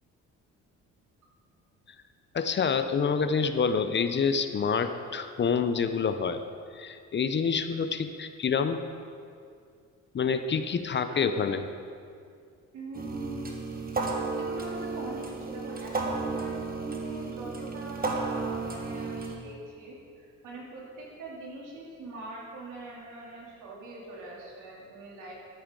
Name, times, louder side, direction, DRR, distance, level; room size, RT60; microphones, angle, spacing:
voice 1, 2.3-6.4 6.8-8.8 10.1-11.6, left 5 dB, 40° left, 9 dB, 0.6 m, -27 dB
voice 2, 12.7-13.5 14.3-25.3, right 2 dB, 80° right, -4 dB, 3.0 m, -42 dB
sound 1, 12.9-19.4, right 3 dB, 30° right, 1.4 m, -33 dB
12.5 x 8.5 x 3.8 m, 2.3 s
cardioid pair, 90°, 30 cm